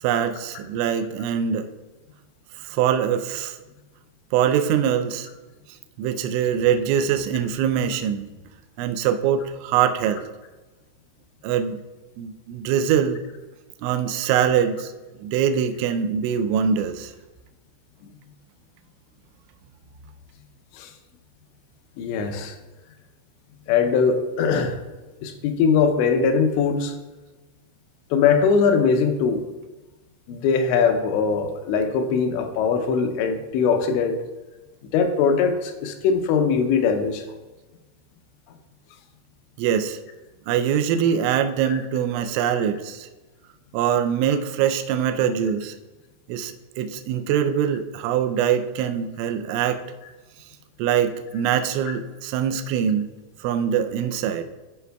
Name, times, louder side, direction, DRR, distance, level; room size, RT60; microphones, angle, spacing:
voice 1, 0.0-1.7 2.6-3.6 4.3-5.3 6.0-8.3 8.8-10.2 11.4-11.8 12.2-13.2 13.8-14.9 15.2-17.1 39.6-40.0 40.5-43.1 43.7-45.8 46.3-49.8 50.8-53.1 53.4-54.4, right 8 dB, 85° right, 8 dB, 2.8 m, -23 dB
voice 2, 22.0-22.5 23.7-24.8 25.2-26.9 28.1-29.5 30.3-34.2 34.9-37.2, left 5 dB, 80° left, 6 dB, 2.7 m, -21 dB
13.0 x 5.4 x 2.2 m, 1.2 s
omnidirectional pair, 5.5 m